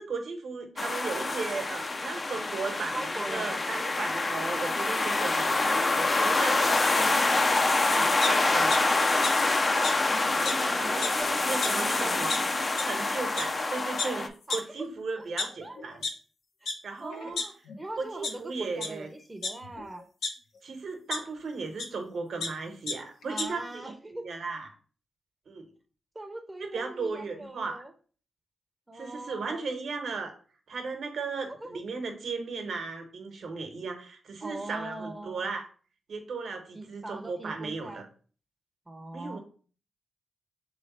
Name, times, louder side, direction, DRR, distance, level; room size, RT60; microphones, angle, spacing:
voice 1, 0.0-7.1 7.5-9.3 10.4-11.1 11.4-12.4 12.8-16.0 16.8-17.4 18.0-19.1 20.6-24.7 25.5-25.7 26.6-27.8 28.9-30.3 30.7-35.7 36.1-38.0 39.1-39.4, right 4 dB, 70° right, 4 dB, 1.0 m, -36 dB
sound 1, 0.8-14.3, left 2 dB, 40° left, 0.5 m, -26 dB
voice 2, 2.9-3.6 5.6-5.9 6.9-8.1 10.1-12.6 14.5-14.6 15.4-15.8 16.6-16.7 17.0-20.1 23.3-24.3 26.1-27.9 28.9-29.7 31.6-31.8 34.4-35.4 36.7-38.1 38.9-39.4, right 2 dB, 20° right, 6 dB, 0.7 m, -41 dB
sound 2, 8.2-8.8 9.2-9.3 9.8-9.9 10.4-10.5 10.9-11.2 11.6-11.7 12.3-12.4 12.8-12.9 13.4-13.5 14.0-14.1 14.5-14.6 15.2-16.1 16.7-16.8 17.1-17.8 18.2-18.3 18.8-18.9 19.4-20.3 21.1-21.2 21.8-21.9 22.2-22.5 22.9-23.0 23.2-23.4, left 4 dB, 80° left, 0.8 m, -31 dB
3.5 x 3.2 x 4.1 m, 0.41 s
supercardioid pair, 50°, 0 cm